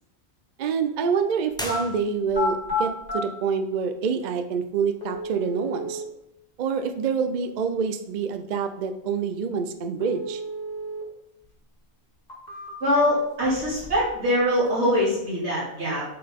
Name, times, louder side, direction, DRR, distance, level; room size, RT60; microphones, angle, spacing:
voice 1, 0.6-6.0 6.6-10.4, right 6 dB, 55° right, 7 dB, 0.5 m, -27 dB
sound 1, 1.5-1.8 2.3-3.2 4.2-4.3 5.0-6.0 10.0-11.0 11.4-11.5 12.1-13.0 13.4-14.1 14.4-15.0, left 2 dB, 40° left, 1.8 m, -32 dB
sound 2, 1.5-2.6, equal, 5° left, 0.5 m, -36 dB
voice 2, 12.8-16.0, left 1 dB, 85° right, -7 dB, 2.8 m, -23 dB
7.7 x 3.8 x 3.6 m, 0.82 s
omnidirectional pair, 1.1 m